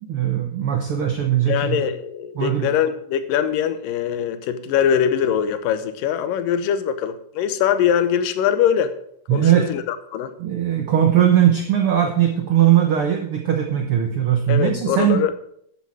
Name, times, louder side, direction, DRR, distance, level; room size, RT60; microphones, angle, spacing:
voice 1, 0.0-1.8 2.4-2.7 9.3-9.8 10.4-15.2, right 10 dB, 75° right, 5 dB, 1.2 m, -19 dB
voice 2, 1.5-8.9 9.3-10.3 14.5-15.3, left 9 dB, 85° left, 11 dB, 2.5 m, -22 dB
11.5 x 8.5 x 4.8 m, 0.69 s
omnidirectional pair, 3.8 m